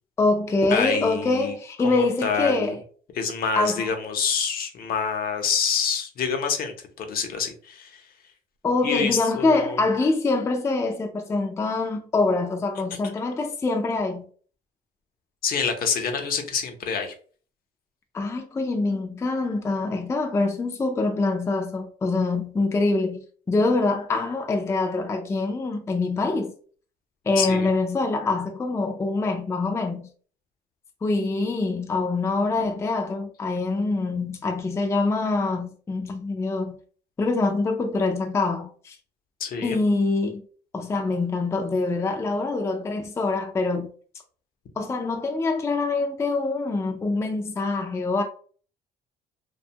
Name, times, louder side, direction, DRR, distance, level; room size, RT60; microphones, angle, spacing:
voice 1, 0.2-2.8 3.5-3.9 8.6-14.2 18.1-23.2 23.5-26.5 27.3-30.1 31.0-36.8 37.2-39.0 39.6-40.4 40.7-43.9 44.8-48.2, left 3 dB, 15° left, 0.4 m, -25 dB
voice 2, 0.7-1.5 1.8-2.7 3.1-8.0 8.8-9.8 15.4-17.1 27.4-27.7 39.4-39.8, left 6 dB, 60° left, 0.7 m, -27 dB
2.5 x 2.2 x 2.7 m
cardioid pair, 110°, 17 cm